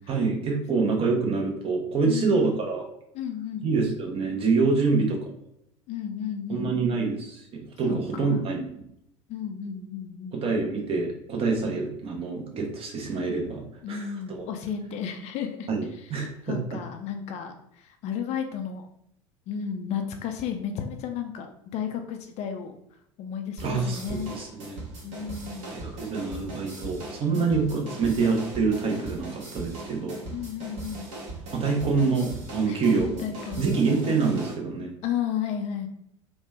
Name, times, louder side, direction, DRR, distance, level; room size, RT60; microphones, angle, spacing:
voice 1, 0.1-2.9 3.6-5.2 6.5-8.8 10.3-13.6 13.9-14.4 15.7-16.6 23.6-24.8 25.6-30.2 31.5-33.3 33.6-34.9, right 4 dB, 35° right, 0 dB, 0.8 m, -26 dB
voice 2, 2.0-2.4 3.1-3.7 4.8-5.2 5.9-6.8 7.9-8.4 9.3-10.4 13.8-15.7 16.0-16.1 16.4-18.9 19.5-21.5 21.7-22.8 23.2-24.3 25.0-25.8 27.3-27.6 30.3-31.1 32.7-33.8 35.0-35.9, left 8 dB, 40° left, 5 dB, 0.4 m, -33 dB
sound 1, 23.6-34.5, right 2 dB, 55° right, 1.2 m, -39 dB
3.1 x 2.2 x 3.2 m, 0.75 s
figure-of-eight pair, 70°, 17 cm